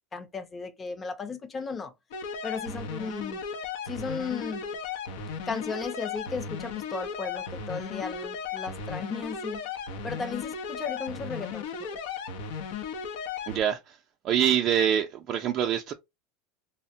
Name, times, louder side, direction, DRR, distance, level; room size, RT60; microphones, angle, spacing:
voice 1, 0.1-1.9 2.4-3.4 3.8-4.6 5.5-9.6 10.0-11.7, left 4 dB, 25° left, 0.6 m, -35 dB
sound 1, 2.1-13.6, left 6 dB, 80° left, 0.6 m, -36 dB
voice 2, 13.5-14.0 14.2-15.9, right 9 dB, 45° right, 0.4 m, -25 dB
3.3 x 2.1 x 2.6 m
supercardioid pair, 115°, 0 cm